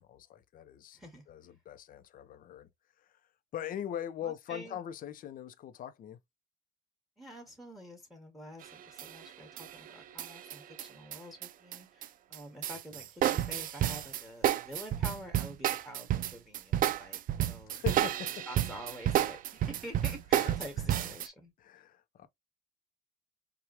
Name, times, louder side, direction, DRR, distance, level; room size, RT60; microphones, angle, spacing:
voice 1, 0.0-1.0 1.3-2.7 3.5-6.2 17.7-18.4 20.3-20.9 21.6-22.3, left 10 dB, 55° left, 0.7 m, -41 dB
voice 2, 0.9-1.3 4.2-4.8 7.2-17.8 18.5-21.5, equal, ahead, 1.6 m, -48 dB
sound 1, 8.6-9.3 9.6-12.1 12.3-21.3, right 12 dB, 55° right, 0.4 m, -31 dB
4.7 x 2.3 x 2.8 m
cardioid pair, 110°, 17 cm